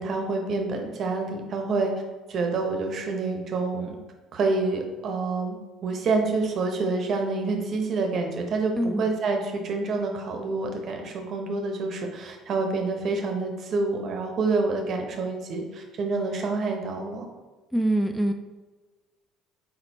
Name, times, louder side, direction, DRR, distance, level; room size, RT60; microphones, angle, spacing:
voice 1, 0.0-1.9 2.3-4.0 4.3-5.6 5.8-17.3, right 3 dB, 55° right, 3 dB, 0.8 m, -27 dB
voice 2, 8.8-9.1 17.7-18.3, right 1 dB, ahead, 5 dB, 0.3 m, -24 dB
4.2 x 3.9 x 2.7 m, 1.3 s
hypercardioid pair, 60°, 0 cm